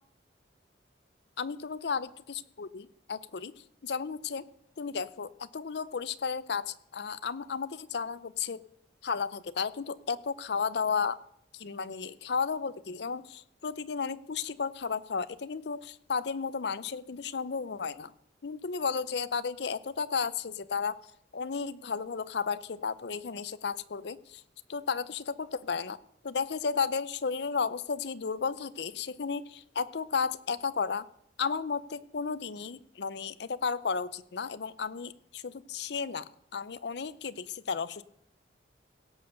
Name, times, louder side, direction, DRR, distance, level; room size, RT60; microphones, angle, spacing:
voice 1, 1.4-3.5 3.8-4.5 4.8-8.6 9.0-11.2 11.5-18.1 18.4-21.0 21.3-24.4 24.7-26.0 26.2-31.1 31.4-38.0, left 5 dB, 60° left, 16 dB, 0.5 m, -33 dB
17.0 x 6.8 x 6.6 m, 0.70 s
head